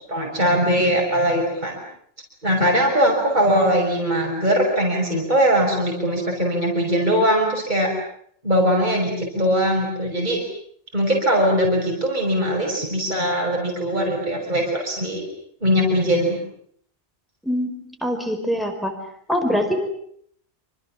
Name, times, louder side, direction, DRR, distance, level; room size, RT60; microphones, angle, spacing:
voice 1, 0.1-1.8 2.4-7.9 8.4-10.4 10.9-15.2 15.6-16.4, equal, 40° right, 0 dB, 6.2 m, -20 dB
voice 2, 17.4-19.0 19.3-20.0, equal, ahead, 5 dB, 5.1 m, -24 dB
27.5 x 27.5 x 7.4 m, 0.64 s
omnidirectional pair, 1.2 m